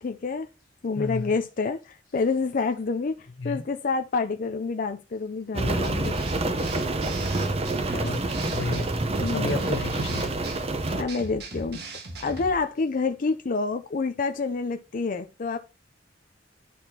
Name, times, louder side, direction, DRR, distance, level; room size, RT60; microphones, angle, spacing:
voice 1, 0.0-0.5 0.8-6.2 9.2-9.6 10.7-15.6, left 4 dB, 45° left, 0.5 m, -28 dB
voice 2, 0.9-1.4 3.4-3.6 7.9-8.2 8.5-8.9 9.3-10.4, left 3 dB, 80° left, 1.1 m, -31 dB
Rain, 5.5-11.0, right 2 dB, 35° right, 0.8 m, -27 dB
sound 1, 5.7-12.6, right 3 dB, 60° right, 1.5 m, -39 dB
11.0 x 4.2 x 2.8 m
head